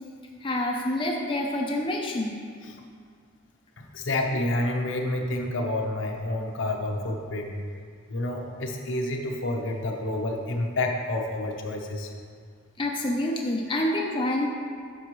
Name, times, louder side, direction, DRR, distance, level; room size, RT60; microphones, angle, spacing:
voice 1, 0.4-2.4 12.8-14.5, left 1 dB, 25° left, 0 dB, 0.6 m, -27 dB
voice 2, 3.8-7.6 8.1-12.1 13.7-13.9, left 1 dB, 65° left, 2 dB, 0.9 m, -29 dB
10.5 x 6.4 x 3.1 m, 2.1 s
head